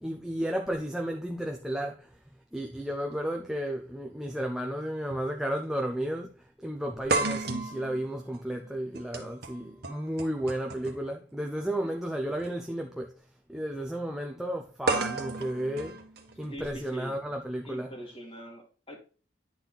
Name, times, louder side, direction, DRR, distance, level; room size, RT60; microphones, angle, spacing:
voice 1, 0.0-2.1 2.5-6.3 6.6-13.1 13.5-16.0 16.4-17.9, right 1 dB, 5° right, 0.7 m, -33 dB
sound 1, 3.9-4.0 5.1-5.3 5.6-5.7 7.1-11.1 12.3-12.5 14.9-16.9, right 3 dB, 55° right, 1.3 m, -33 dB
voice 2, 16.4-17.2 17.6-19.0, equal, 30° left, 2.4 m, -43 dB
10.0 x 4.4 x 3.9 m
head